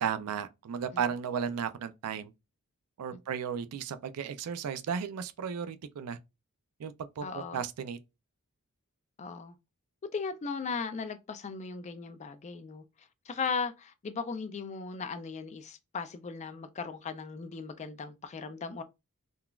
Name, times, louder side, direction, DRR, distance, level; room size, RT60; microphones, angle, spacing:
voice 1, 0.0-2.3 3.0-6.2 6.8-8.0, right 7 dB, 85° right, 0.4 m, -34 dB
voice 2, 7.2-7.6 9.2-9.6 10.1-18.8, left 5 dB, 30° left, 0.3 m, -37 dB
3.8 x 2.2 x 2.3 m
head